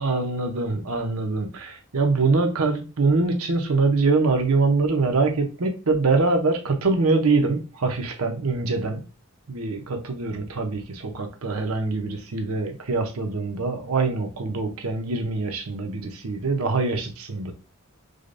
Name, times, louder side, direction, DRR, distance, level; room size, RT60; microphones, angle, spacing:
voice 1, 0.0-9.0 9.5-17.5, right 3 dB, 75° right, 5 dB, 0.8 m, -24 dB
4.9 x 2.3 x 2.6 m, 0.33 s
head